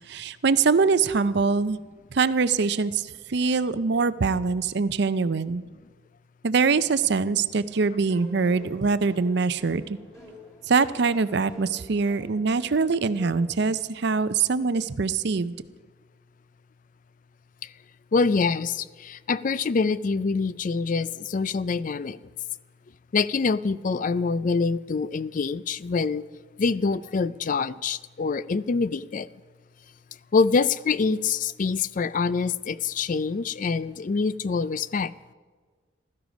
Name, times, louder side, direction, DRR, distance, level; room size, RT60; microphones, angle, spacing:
voice 1, 0.1-1.8 2.1-5.6 6.4-10.0 10.7-15.5, right 4 dB, 60° right, 15 dB, 0.5 m, -23 dB
sound 1, 7.7-13.7, left 1 dB, 15° left, 3.0 m, -48 dB
voice 2, 18.1-22.2 23.1-26.2 26.6-29.3 30.3-35.3, left 4 dB, 40° left, 17 dB, 0.4 m, -25 dB
15.5 x 13.5 x 5.1 m, 1.5 s
head